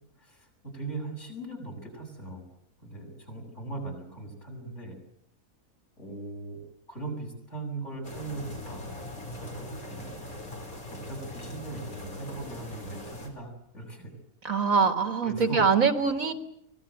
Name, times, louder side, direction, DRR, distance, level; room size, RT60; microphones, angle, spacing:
voice 1, 0.2-2.4 2.8-5.0 6.0-6.6 6.9-8.8 9.4-10.1 10.9-14.1 14.7-14.9 15.2-15.7, right 3 dB, 50° left, 4 dB, 7.9 m, -39 dB
sound 1, 8.0-13.3, left 1 dB, 70° left, 5.1 m, -41 dB
voice 2, 14.4-16.3, right 5 dB, 60° right, 8 dB, 2.2 m, -23 dB
24.5 x 18.5 x 9.3 m, 0.75 s
omnidirectional pair, 1.6 m